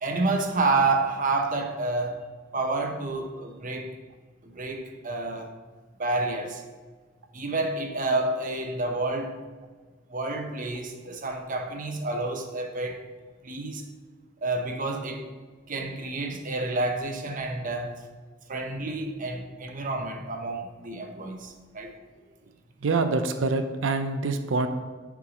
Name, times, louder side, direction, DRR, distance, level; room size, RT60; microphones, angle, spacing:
voice 1, 0.0-2.2 2.5-3.9 4.4-5.5 6.0-6.6 7.3-9.4 10.1-13.0 13.4-13.9 14.4-15.3 15.7-18.0 18.5-21.9, right 2 dB, 45° right, 4 dB, 0.7 m, -29 dB
voice 2, 22.8-24.7, right 3 dB, 80° right, 7 dB, 0.5 m, -25 dB
6.8 x 4.7 x 5.0 m, 1.4 s
head